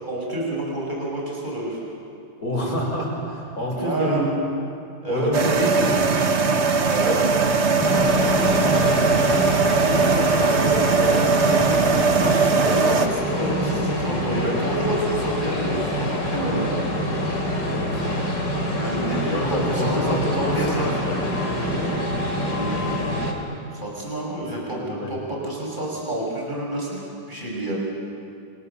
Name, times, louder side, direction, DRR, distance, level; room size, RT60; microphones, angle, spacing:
voice 1, 0.0-1.8 3.7-4.2 5.0-5.3 6.9-7.3 9.9-16.8 18.7-20.9 22.5-23.0 23.7-27.8, right 1 dB, 25° right, -3 dB, 5.9 m, -29 dB
voice 2, 2.4-4.3 5.1-6.0 8.3-9.0 17.6-17.9 19.3-22.0 24.7-25.1, equal, 55° left, -1 dB, 6.7 m, -28 dB
sound 1, 5.3-13.1, right 4 dB, 40° right, 1.4 m, -20 dB
sound 2, 7.8-23.3, left 1 dB, 75° left, 4.1 m, -25 dB
29.0 x 27.5 x 6.9 m, 2.5 s
omnidirectional pair, 1.9 m